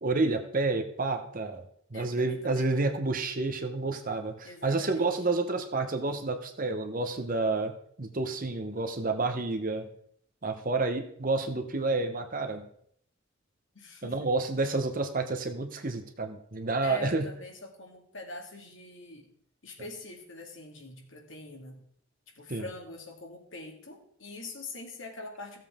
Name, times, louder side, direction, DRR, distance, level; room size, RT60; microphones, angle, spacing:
voice 1, 0.0-1.6 1.9-9.9 10.4-12.7 14.0-17.3 22.5-22.7, right 3 dB, 40° right, 6 dB, 1.0 m, -29 dB
voice 2, 1.9-3.1 4.4-5.2 13.7-14.5 16.8-19.3 19.6-21.8 22.3-25.6, left 3 dB, 60° left, 1 dB, 2.1 m, -44 dB
15.5 x 7.5 x 3.6 m, 0.67 s
head